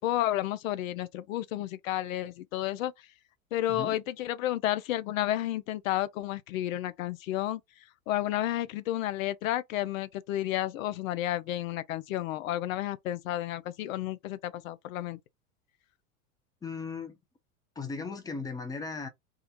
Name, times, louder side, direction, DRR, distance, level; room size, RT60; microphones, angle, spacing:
voice 1, 0.0-2.9 3.5-7.6 8.1-15.2, left 14 dB, 65° left, 0.5 m, -31 dB
voice 2, 16.6-17.2 17.8-19.1, left 4 dB, 10° left, 0.4 m, -37 dB
2.3 x 2.1 x 2.8 m
hypercardioid pair, 90°, 44 cm